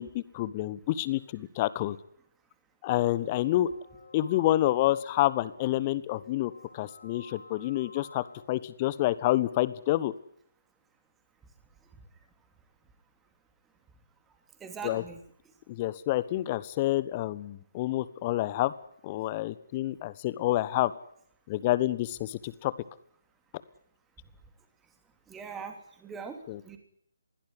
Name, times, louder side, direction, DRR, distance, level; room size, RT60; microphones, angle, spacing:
voice 1, 0.0-2.0 2.8-3.7 4.1-10.1 14.8-15.0 15.7-18.7 19.0-20.9 21.5-22.7 26.5-26.6, left 15 dB, 25° left, 17 dB, 1.2 m, -28 dB
sound 1, 3.0-8.5, left 2 dB, 75° left, 5.3 m, -52 dB
voice 2, 14.6-15.2 25.3-26.4 26.6-26.8, right 6 dB, 10° right, 6 dB, 3.1 m, -41 dB
21.5 x 16.5 x 9.6 m, 0.67 s
figure-of-eight pair, 140°, 0 cm